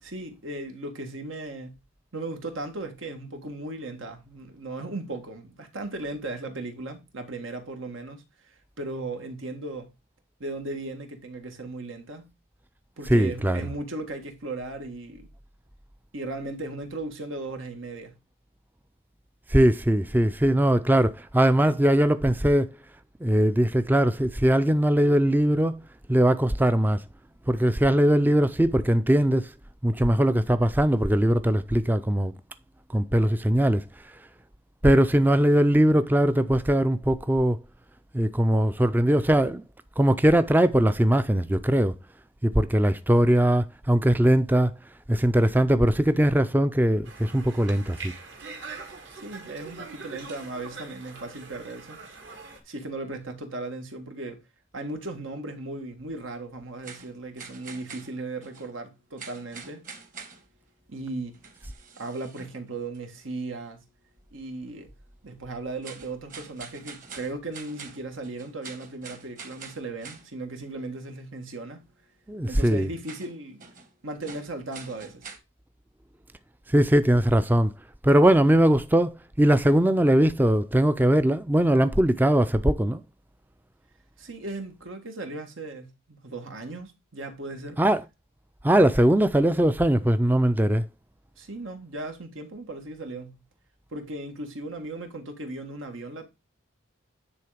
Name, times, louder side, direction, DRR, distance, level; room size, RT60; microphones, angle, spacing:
voice 1, 0.0-1.8 2.1-9.9 10.4-12.3 13.0-15.3 16.1-18.2 49.2-52.0 52.7-54.4 54.7-59.9 60.9-61.4 62.0-63.8 64.3-64.9 65.2-71.9 72.5-73.6 74.0-75.3 84.2-87.8 91.4-93.4 93.9-96.3, right 2 dB, 90° right, 1.8 m, -37 dB
voice 2, 13.1-13.6 19.5-22.7 23.2-25.8 26.1-27.0 27.5-29.5 29.8-32.3 32.9-34.2 34.8-37.6 38.1-39.6 40.0-42.0 42.4-44.7 45.1-48.1 72.3-72.9 76.7-77.7 78.0-83.0 87.8-88.0 88.6-90.9, right 1 dB, 10° right, 0.4 m, -21 dB
Conversation, 47.0-52.6, right 4 dB, 65° right, 2.0 m, -43 dB
sound 1, 56.8-58.8 59.2-60.6 61.3-62.6 62.9-63.2 65.8-70.3 73.0-73.9 74.2-75.4, right 5 dB, 40° right, 1.5 m, -45 dB
9.7 x 3.7 x 5.0 m
head